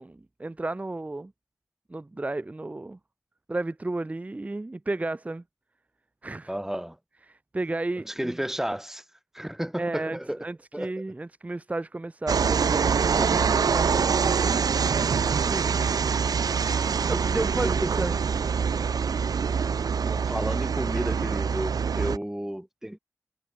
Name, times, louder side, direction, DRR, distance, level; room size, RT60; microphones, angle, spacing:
voice 1, 0.0-1.3 1.9-3.0 3.5-5.4 6.2-6.5 7.3-8.4 9.8-14.6 15.5-16.0 16.6-18.2, right 2 dB, 25° right, 0.9 m, -33 dB
voice 2, 6.5-7.0 8.1-9.0 9.3-10.4 10.7-10.9 17.6-18.2 20.0-23.0, equal, 5° right, 4.5 m, -32 dB
sound 1, 12.3-22.2, right 6 dB, 80° right, 1.3 m, -25 dB
wide cardioid pair, 85°, 6 cm